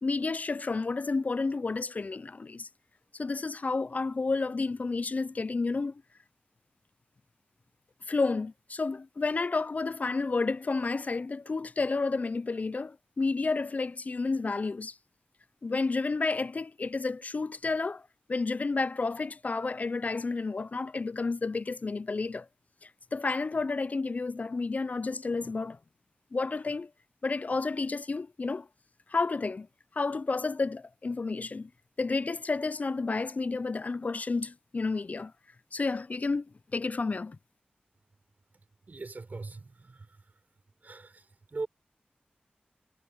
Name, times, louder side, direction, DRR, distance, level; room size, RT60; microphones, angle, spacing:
voice 1, 0.0-2.7 3.1-6.0 8.1-15.0 15.6-18.0 18.3-22.5 22.8-25.8 26.3-26.9 27.2-28.7 29.1-29.7 29.9-31.7 32.0-35.3 35.7-36.5 36.7-37.4, left 3 dB, 50° left, 0.3 m, -31 dB
voice 2, 38.5-40.2 40.8-41.7, right 3 dB, 60° right, 4.0 m, -41 dB
wide cardioid pair, 65°, 3 cm